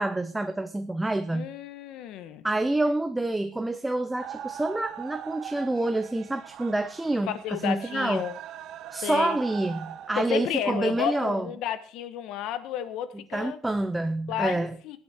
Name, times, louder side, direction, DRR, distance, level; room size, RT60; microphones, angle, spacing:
voice 1, 0.0-1.5 2.4-8.3 8.9-11.5 13.3-14.8, right 2 dB, 10° right, 9 dB, 0.6 m, -27 dB
voice 2, 1.3-2.4 7.3-8.4 9.0-9.4 10.2-13.6 14.3-15.0, left 10 dB, 75° left, 12 dB, 1.4 m, -32 dB
sound 1, 4.2-10.6, right 10 dB, 60° right, 1.0 m, -41 dB
17.5 x 8.7 x 4.4 m, 0.44 s
cardioid pair, 165°, 0 cm